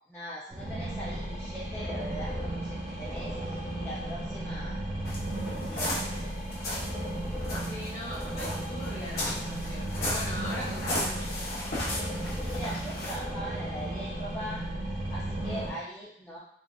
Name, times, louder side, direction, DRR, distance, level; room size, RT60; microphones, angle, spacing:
voice 1, 0.1-4.8 5.5-6.3 12.4-14.6 15.1-16.4, equal, 15° left, -10 dB, 0.5 m, -41 dB
sound 1, 0.5-15.7, right 1 dB, 15° right, 0.8 m, -35 dB
sound 2, 5.0-7.0 7.4-13.1, left 1 dB, 55° left, 0.8 m, -35 dB
voice 2, 7.6-11.4, left 1 dB, 35° left, -8 dB, 1.2 m, -41 dB
3.5 x 2.3 x 2.3 m, 0.69 s
head